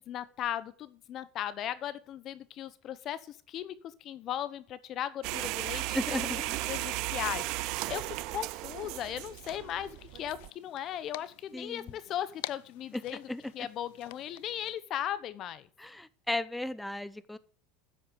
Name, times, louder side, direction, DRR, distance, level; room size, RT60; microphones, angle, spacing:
voice 1, 0.0-5.8 6.1-13.3 13.5-15.7, left 11 dB, 45° left, 16 dB, 0.9 m, -37 dB
sound 1, 5.2-10.5, right 19 dB, 60° right, 0.6 m, -35 dB
voice 2, 5.9-6.6 11.5-11.9 12.9-13.0 13.3-13.4 15.8-17.4, left 1 dB, 5° left, 16 dB, 0.8 m, -35 dB
sound 2, 9.2-14.8, left 20 dB, 75° left, 0.5 m, -48 dB
10.0 x 7.8 x 7.7 m, 0.43 s
supercardioid pair, 120°, 0 cm